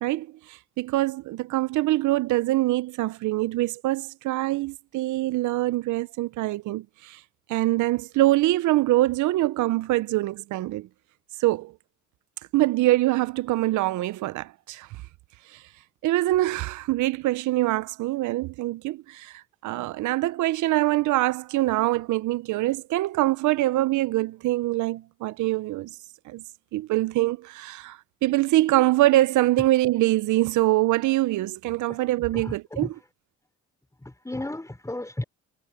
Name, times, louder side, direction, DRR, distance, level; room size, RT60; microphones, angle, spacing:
voice 1, 0.0-7.2 7.5-10.9 11.4-11.7 12.5-14.9 15.5-15.6 16.0-25.9 26.3-26.4 26.7-32.9, right 17 dB, 75° right, 0.6 m, -24 dB
voice 2, 32.3-32.9 34.0-35.2, left 1 dB, 10° left, 4.4 m, -34 dB
cardioid pair, 90°, 30 cm